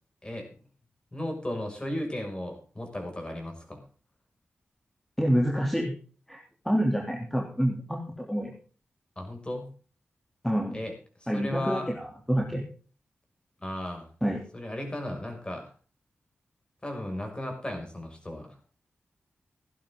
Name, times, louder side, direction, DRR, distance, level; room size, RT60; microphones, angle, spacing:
voice 1, 1.1-3.8 9.2-9.7 10.7-10.9 11.2-11.9 13.6-14.1 14.5-15.7 16.8-18.6, left 1 dB, 25° left, 3 dB, 6.3 m, -35 dB
voice 2, 5.2-5.9 6.3-6.4 6.6-8.5 10.4-10.8 11.3-12.6 14.2-14.4, equal, 5° left, 0 dB, 3.1 m, -27 dB
16.5 x 11.5 x 3.8 m, 0.40 s
cardioid pair, 60°, 4 cm